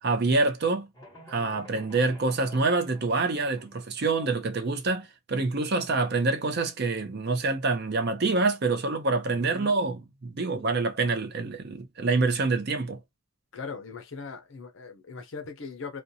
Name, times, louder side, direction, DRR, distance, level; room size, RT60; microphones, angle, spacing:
voice 1, 0.0-0.9 1.3-13.0, right 3 dB, 45° right, 0.5 m, -26 dB
sound 1, 0.9-3.8, equal, 15° left, 1.0 m, -50 dB
voice 2, 9.3-9.7 13.5-16.0, left 4 dB, 55° left, 0.6 m, -40 dB
2.5 x 2.2 x 2.6 m
head